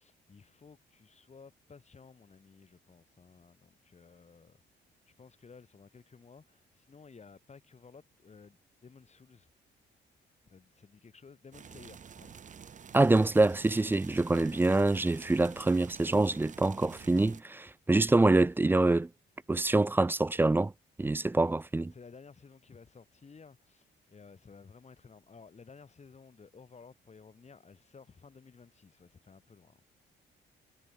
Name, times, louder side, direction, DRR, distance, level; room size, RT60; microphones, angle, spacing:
voice 1, 0.0-4.6 5.1-9.5 10.5-12.4 13.2-13.5 21.9-29.8, left 5 dB, 35° left, 4.5 m, -55 dB
sound 1, 11.5-17.4, right 7 dB, 40° right, 0.9 m, -49 dB
voice 2, 12.9-19.1 19.5-20.7 21.0-21.9, right 2 dB, 10° right, 0.4 m, -25 dB
cardioid pair, 90°, 20 cm